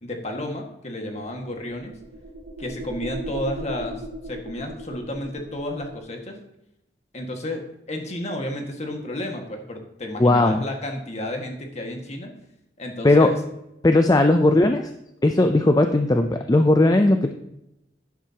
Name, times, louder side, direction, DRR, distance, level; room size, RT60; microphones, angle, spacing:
voice 1, 0.0-1.9 2.6-6.4 7.1-12.3 12.8-13.4, left 1 dB, 40° left, 3 dB, 1.8 m, -32 dB
sound 1, 1.1-6.0, right 1 dB, 40° right, 0.9 m, -38 dB
voice 2, 10.2-10.6 13.0-13.3 13.8-14.9 15.2-17.3, left 2 dB, 20° left, 6 dB, 0.5 m, -17 dB
11.5 x 10.5 x 2.9 m, 0.85 s
head